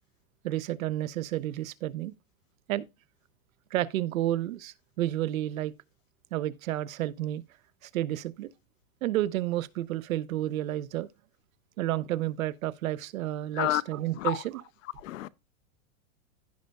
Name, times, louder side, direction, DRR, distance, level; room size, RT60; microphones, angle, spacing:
voice 1, 0.4-2.1 2.7-2.9 3.7-5.7 6.3-7.4 7.8-8.5 9.0-11.1 11.8-14.6, right 14 dB, 85° right, 0.8 m, -31 dB
voice 2, 13.6-13.8 14.2-14.3 15.0-15.3, left 15 dB, 70° left, 0.7 m, -28 dB
15.5 x 5.2 x 2.2 m
supercardioid pair, 170°, 40 cm